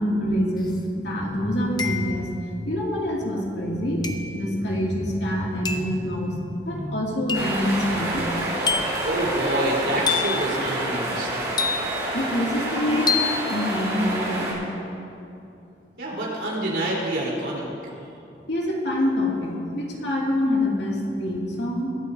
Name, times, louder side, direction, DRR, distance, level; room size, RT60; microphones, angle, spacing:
voice 1, 0.0-2.3 2.7-8.3 12.1-13.2 13.5-14.6 18.5-21.9, left 1 dB, 80° left, -3 dB, 2.4 m, -26 dB
sound 1, 0.6-0.7 1.8-2.3 4.0-4.4 5.6-6.0 7.3-7.6 8.7-9.1 10.1-10.5 11.6-12.1 13.1-13.4, left 5 dB, 25° left, 0.6 m, -26 dB
sound 2, 7.3-14.5, right 1 dB, 20° right, 3.6 m, -28 dB
voice 2, 9.0-11.3 16.0-17.7, right 1 dB, 70° right, -4 dB, 3.7 m, -26 dB
22.5 x 12.0 x 2.7 m, 2.7 s
head